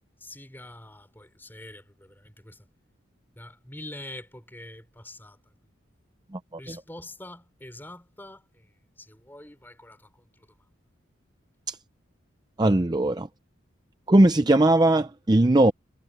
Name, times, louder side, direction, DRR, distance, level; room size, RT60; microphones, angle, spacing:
voice 1, 0.2-2.6 3.4-5.4 6.6-8.7 9.0-10.1, left 1 dB, 10° left, 4.5 m, -44 dB
voice 2, 12.6-13.3 14.1-15.7, right 1 dB, 20° right, 0.5 m, -19 dB
head